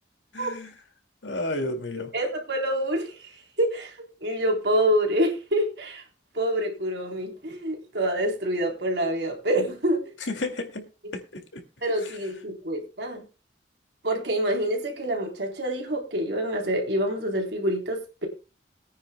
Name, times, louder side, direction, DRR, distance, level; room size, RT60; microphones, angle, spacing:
voice 1, 0.3-0.7 1.2-2.1 10.3-10.9 11.1-11.6, left 2 dB, 85° left, 5 dB, 2.2 m, -32 dB
voice 2, 2.1-3.3 3.6-3.9 4.2-6.0 6.3-10.0 11.8-13.2 14.0-18.3, right 1 dB, 70° right, 2 dB, 3.5 m, -26 dB
22.0 x 9.6 x 2.2 m, 0.32 s
head